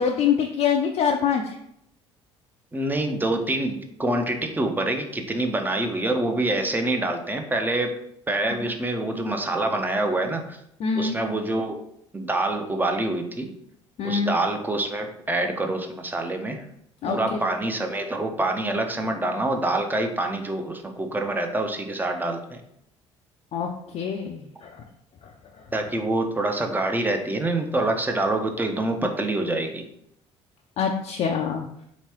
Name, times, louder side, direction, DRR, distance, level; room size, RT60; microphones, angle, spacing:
voice 1, 0.0-1.6 8.6-8.7 10.8-11.2 14.0-14.4 17.0-17.2 23.5-24.8 30.8-31.6, left 6 dB, 45° left, 1 dB, 0.4 m, -25 dB
voice 2, 2.7-7.9 8.3-10.6 10.9-11.8 12.1-13.5 14.0-16.6 17.1-22.6 25.7-29.8, right 2 dB, 15° right, 4 dB, 0.6 m, -26 dB
3.5 x 3.0 x 2.9 m, 0.74 s
figure-of-eight pair, 55°, 15 cm